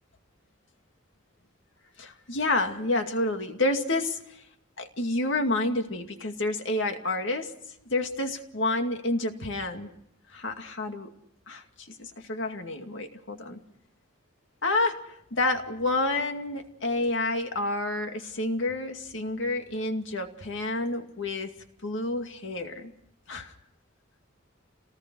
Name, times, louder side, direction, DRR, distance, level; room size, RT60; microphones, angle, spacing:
voice 1, 2.0-4.4 4.8-7.5 7.9-9.9 10.3-11.1 11.5-13.6 14.6-21.5 21.8-22.9 23.3-23.5, left 2 dB, 65° left, 5 dB, 2.3 m, -29 dB
28.0 x 19.0 x 6.2 m, 0.77 s
head